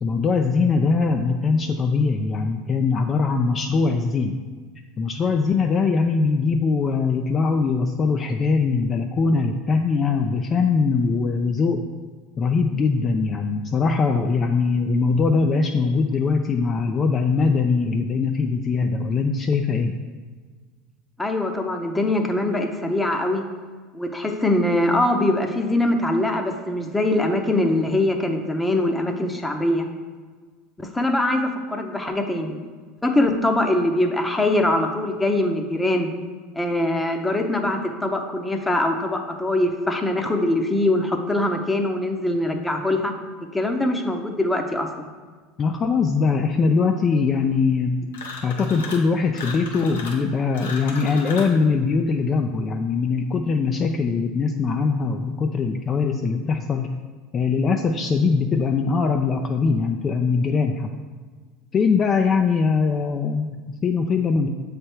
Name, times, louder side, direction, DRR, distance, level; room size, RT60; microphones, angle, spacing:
voice 1, 0.0-4.4 5.0-11.9 12.4-20.0 45.6-48.1 48.4-56.9 57.3-60.9 61.7-64.5, left 4 dB, 35° left, 4 dB, 0.4 m, -21 dB
voice 2, 21.2-23.4 23.9-29.9 30.8-32.6 33.0-36.1 36.6-43.1 43.5-45.1, left 1 dB, 10° left, 4 dB, 0.7 m, -22 dB
sound 1, 48.1-49.1 49.3-51.6, left 4 dB, 90° left, 1.0 m, -35 dB
7.3 x 3.3 x 4.5 m, 1.5 s
hypercardioid pair, 95°, 0 cm